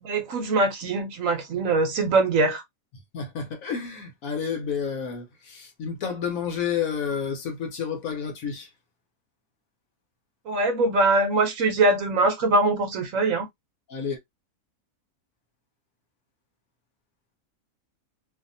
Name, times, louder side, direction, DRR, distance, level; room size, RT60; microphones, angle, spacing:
voice 1, 0.0-2.6 10.5-13.5, right 2 dB, 65° right, 1.0 m, -22 dB
voice 2, 3.1-8.7 13.9-14.2, left 7 dB, 65° left, 1.2 m, -30 dB
2.7 x 2.5 x 2.5 m
omnidirectional pair, 1.6 m